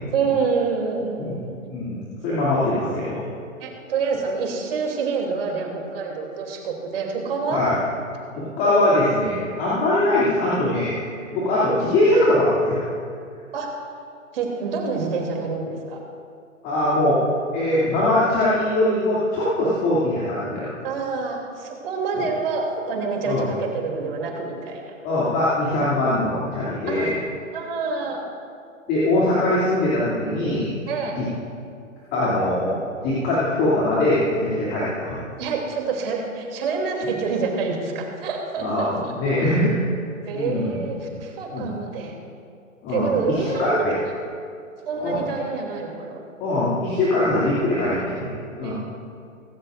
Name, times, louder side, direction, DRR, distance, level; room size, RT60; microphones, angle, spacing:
voice 1, 0.1-1.6 2.3-2.4 3.6-7.6 13.5-13.7 14.3-16.0 20.8-24.9 26.9-27.1 27.5-28.3 30.9-31.2 35.4-39.1 40.3-42.1 42.9-43.8 44.9-46.2 48.6-48.8, right 4 dB, 45° right, 1 dB, 2.9 m, -27 dB
voice 2, 1.7-3.2 7.5-7.7 8.4-10.9 11.3-12.8 16.6-17.2 17.5-20.7 22.2-22.3 23.2-23.5 25.0-27.1 28.9-30.8 31.2-31.3 32.1-35.2 38.6-39.7 40.3-40.8 41.5-41.7 42.8-43.9 44.9-45.2 46.4-48.8, left 1 dB, 25° left, -9 dB, 2.7 m, -22 dB
24.5 x 13.0 x 2.5 m, 2.4 s
figure-of-eight pair, 130°, 40 cm